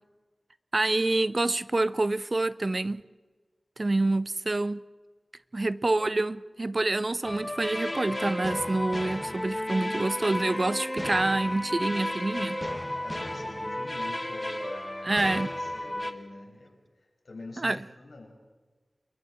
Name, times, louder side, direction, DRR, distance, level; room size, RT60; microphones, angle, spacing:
voice 1, 0.7-3.0 3.8-4.8 5.5-12.6 15.0-15.5 17.6-17.8, right 2 dB, 40° right, 0.5 m, -27 dB
sound 1, 7.2-16.1, left 1 dB, 20° left, 1.4 m, -33 dB
voice 2, 12.3-18.4, left 2 dB, 70° left, 5.8 m, -46 dB
28.5 x 22.0 x 4.4 m
wide cardioid pair, 80°, 0 cm